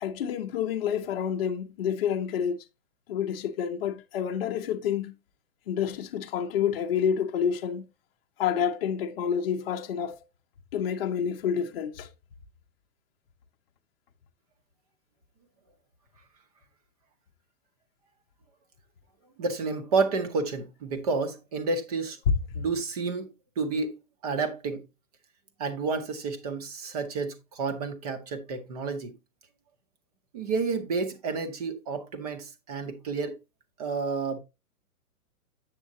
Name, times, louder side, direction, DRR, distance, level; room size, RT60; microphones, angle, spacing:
voice 1, 0.0-2.6 3.1-5.1 5.7-7.9 8.4-10.2 10.7-12.1 22.6-22.7, left 8 dB, 40° left, 0.7 m, -28 dB
voice 2, 19.4-22.2 22.5-24.0 24.2-24.8 25.6-29.1 30.3-33.4 33.8-34.4, right 4 dB, 25° right, 0.7 m, -30 dB
7.4 x 7.4 x 2.6 m
hypercardioid pair, 165°, 45 cm